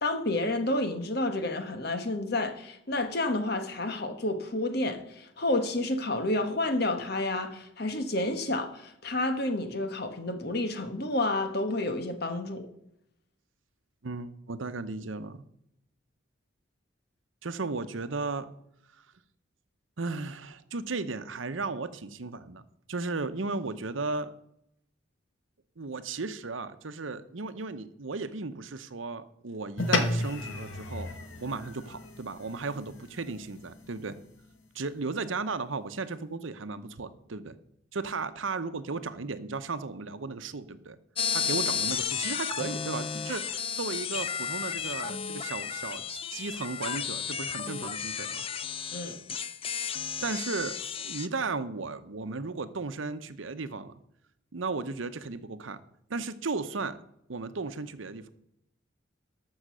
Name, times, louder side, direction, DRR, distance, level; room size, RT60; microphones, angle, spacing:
voice 1, 0.0-12.7 48.9-49.2, left 2 dB, 50° left, 1.4 m, -30 dB
voice 2, 14.0-15.4 17.4-18.5 19.0-19.1 20.0-22.6 22.9-24.3 25.8-31.1 31.4-34.2 34.7-37.6 37.9-41.0 41.3-48.4 50.2-53.9 54.5-55.8 56.1-57.0 57.3-58.3, right 3 dB, 75° right, 0.8 m, -35 dB
sound 1, 29.8-34.4, left 2 dB, 75° left, 1.5 m, -33 dB
sound 2, 41.2-51.3, left 7 dB, 30° left, 0.4 m, -33 dB
13.0 x 6.5 x 6.2 m
head